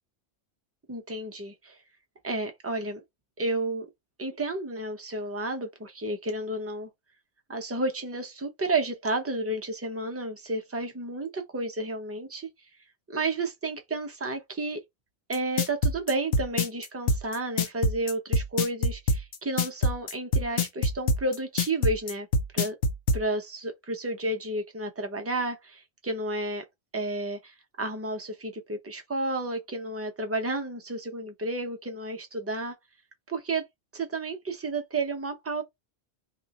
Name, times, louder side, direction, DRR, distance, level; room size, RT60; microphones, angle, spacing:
voice 1, 0.9-1.8 2.2-3.0 3.4-3.9 4.2-6.9 7.5-12.5 13.1-14.8 15.3-22.3 22.5-22.8 23.1-26.6 26.9-32.7 33.3-33.6 33.9-35.6, right 2 dB, 20° right, 0.5 m, -31 dB
sound 1, 15.3-23.2, left 2 dB, 65° left, 0.8 m, -24 dB
2.9 x 2.4 x 4.0 m
omnidirectional pair, 1.1 m